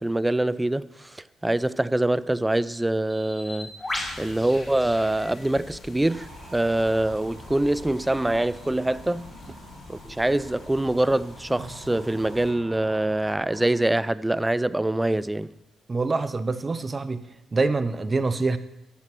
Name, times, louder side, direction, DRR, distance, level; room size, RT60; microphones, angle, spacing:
voice 1, 0.0-3.7 4.2-9.3 9.9-15.5, right 1 dB, 10° right, 0.4 m, -24 dB
Bird, 3.1-9.5, left 2 dB, 15° left, 2.4 m, -40 dB
sound 1, 3.9-12.5, left 3 dB, 50° left, 2.6 m, -46 dB
sound 2, 6.1-13.8, right 4 dB, 65° right, 1.5 m, -48 dB
voice 2, 15.9-17.2 17.5-18.6, right 3 dB, 30° right, 0.7 m, -25 dB
13.5 x 7.6 x 6.0 m
cardioid pair, 90°, 0 cm